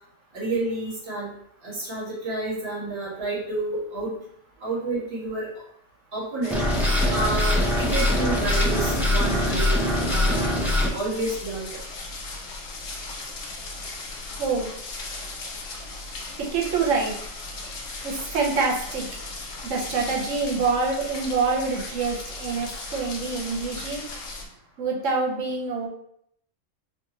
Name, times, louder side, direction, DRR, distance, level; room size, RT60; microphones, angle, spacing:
voice 1, 0.3-1.3 1.6-4.1 4.6-5.5 6.1-6.6 7.1-9.8 10.1-10.4 10.9-11.7, right 2 dB, 55° right, -6 dB, 1.7 m, -29 dB
sound 1, 6.4-24.5, left 3 dB, 80° left, 1.2 m, -37 dB
sound 2, 6.5-10.9, left 1 dB, ahead, 0.4 m, -22 dB
voice 2, 16.4-17.2 18.0-19.1 19.6-24.0 24.8-25.9, right 4 dB, 80° right, -2 dB, 1.2 m, -26 dB
4.8 x 2.6 x 3.0 m, 0.70 s
omnidirectional pair, 1.3 m